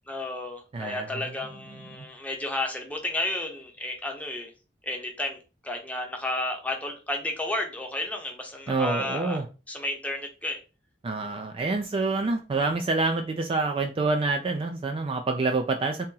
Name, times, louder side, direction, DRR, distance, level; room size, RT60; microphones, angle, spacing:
voice 1, 0.1-4.5 4.8-9.4 9.7-10.6, left 2 dB, 10° left, 0.7 m, -32 dB
voice 2, 0.7-1.1 1.7-2.1 8.7-9.4 11.0-16.1, right 3 dB, 30° right, 0.3 m, -27 dB
2.8 x 2.8 x 3.7 m
head